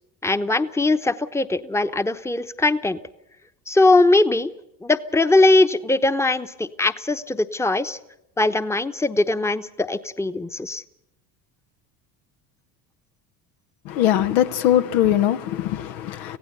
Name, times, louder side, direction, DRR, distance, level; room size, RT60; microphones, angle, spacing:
voice 1, 0.2-3.0 3.7-4.5 4.8-8.0 8.4-10.8, left 2 dB, 5° left, 1.0 m, -20 dB
voice 2, 13.9-16.4, left 11 dB, 75° left, 1.1 m, -21 dB
26.0 x 16.0 x 6.8 m
hypercardioid pair, 70°, 49 cm